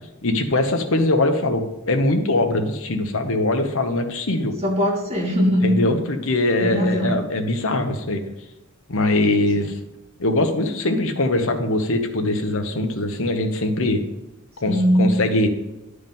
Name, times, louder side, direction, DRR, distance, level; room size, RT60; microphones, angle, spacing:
voice 1, 0.2-4.5 5.6-8.2 8.9-9.7 10.2-14.0 14.6-15.5, left 2 dB, 65° left, 5 dB, 1.1 m, -22 dB
voice 2, 4.6-5.7 6.6-7.2 9.6-9.7 14.6-15.2, equal, 30° right, -2 dB, 2.2 m, -20 dB
10.5 x 4.9 x 5.4 m, 0.97 s
head